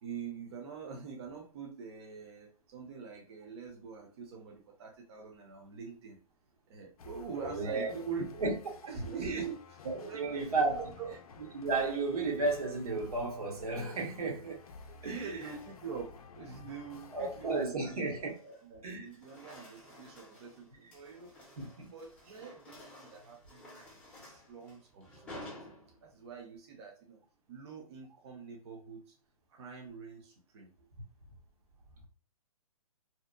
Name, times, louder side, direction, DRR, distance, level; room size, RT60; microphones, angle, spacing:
voice 1, 0.0-6.2 6.7-8.4 8.9-11.2 15.0-18.0 18.4-21.3 21.9-25.6 26.0-27.2 27.5-29.1 29.5-30.7, right 5 dB, 45° right, 0.6 m, -45 dB
sound 1, 7.0-17.6, left 4 dB, 75° left, 0.4 m, -52 dB
voice 2, 7.4-7.9 8.4-8.5 9.2-9.5 9.8-10.9 11.5-14.6 15.0-15.3 17.1-18.4 18.8-19.2 21.6-21.9, right 3 dB, 75° right, 0.8 m, -33 dB
sound 2, 13.1-13.4 14.5-16.1 16.5-16.8 17.3-18.7 19.0-26.3, left 1 dB, 5° left, 0.6 m, -53 dB
2.8 x 2.0 x 2.3 m
hypercardioid pair, 135°, 19 cm